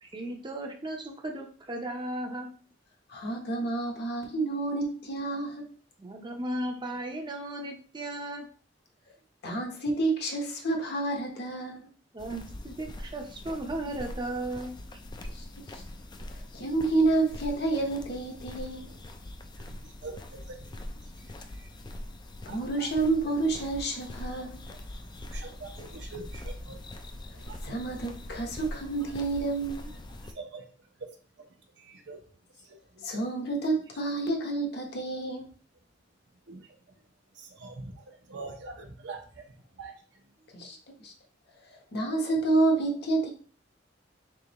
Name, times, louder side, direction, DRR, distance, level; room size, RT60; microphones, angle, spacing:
voice 1, 0.0-2.5 6.0-8.5 12.1-14.8, right 1 dB, 25° right, 0.6 m, -36 dB
voice 2, 3.1-5.7 9.4-11.9 15.3-15.4 15.7-15.8 16.5-18.9 22.4-24.6 27.6-29.9 33.0-35.5 40.5-41.1 41.9-43.3, right 2 dB, 60° left, 1.0 m, -29 dB
sound 1, 12.2-30.3, left 1 dB, 25° left, 0.4 m, -43 dB
voice 3, 19.5-20.7 21.0-21.8 22.4-22.9 25.1-26.8 27.3-27.6 29.0-29.1 30.2-31.1 31.4-32.2 32.5-33.1 36.5-37.0 37.3-40.3, right 3 dB, 65° right, 0.9 m, -45 dB
3.7 x 3.6 x 3.0 m
head